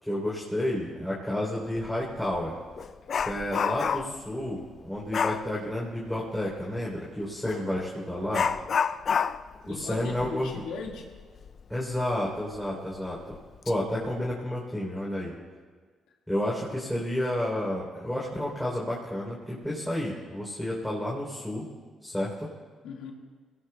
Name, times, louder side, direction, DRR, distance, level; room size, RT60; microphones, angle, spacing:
voice 1, 0.0-2.6 3.2-8.5 9.7-10.5 11.7-13.3 13.6-15.3 16.3-21.7 22.0-22.5, left 1 dB, 5° left, -5 dB, 3.3 m, -31 dB
Dog, 1.8-1.9 2.3-4.2 5.1-5.5 7.4-7.6 8.3-11.6 11.9-12.0 12.5-12.6 13.3-13.7 14.1-14.3, left 6 dB, 50° left, 0.4 m, -29 dB
voice 2, 9.7-11.1 22.8-23.1, left 4 dB, 90° left, 1 dB, 1.8 m, -38 dB
22.0 x 18.0 x 2.3 m, 1.5 s
cardioid pair, 90°, 0 cm